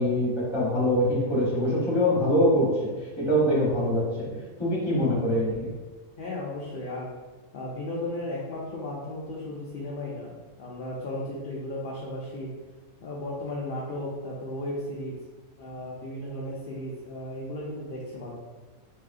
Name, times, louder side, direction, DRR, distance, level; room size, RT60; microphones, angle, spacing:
voice 1, 0.0-2.9 3.2-5.7, equal, 20° left, -6 dB, 1.1 m, -24 dB
voice 2, 6.2-7.1 7.5-12.5 13.0-15.2 15.6-18.3, left 1 dB, 60° left, -4 dB, 0.6 m, -35 dB
3.6 x 3.3 x 2.4 m, 1.3 s
omnidirectional pair, 1.3 m